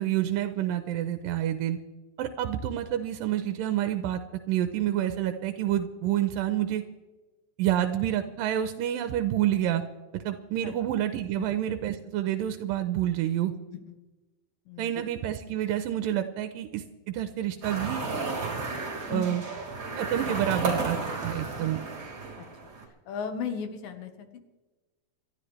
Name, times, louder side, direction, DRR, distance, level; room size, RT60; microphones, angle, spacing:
voice 1, 0.0-1.8 2.2-4.2 4.5-6.8 7.6-9.8 10.1-13.5 14.8-18.0 19.1-19.4 20.0-21.8, right 11 dB, 85° right, 8 dB, 2.4 m, -28 dB
voice 2, 14.7-15.0 19.1-19.4 22.4-22.5 23.1-24.4, left 6 dB, 80° left, 7 dB, 3.1 m, -36 dB
sound 1, 17.6-22.9, right 3 dB, 35° right, 3.6 m, -33 dB
27.5 x 12.5 x 3.3 m, 1.2 s
omnidirectional pair, 4.0 m